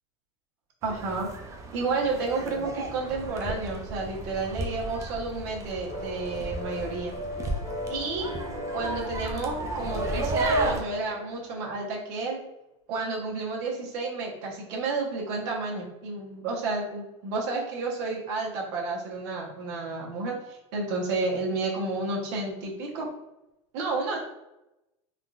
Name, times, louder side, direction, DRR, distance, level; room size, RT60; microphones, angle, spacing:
sound 1, 0.8-10.8, right 2 dB, 20° right, 0.4 m, -33 dB
voice 1, 0.8-1.3 1.7-7.2 7.9-8.3 8.7-12.4 12.9-23.1 23.7-24.2, right 3 dB, 60° right, -2 dB, 1.0 m, -31 dB
sound 2, 5.9-11.7, left 2 dB, 35° left, 1.2 m, -37 dB
3.5 x 2.4 x 2.4 m, 0.94 s
supercardioid pair, 130°, 15 cm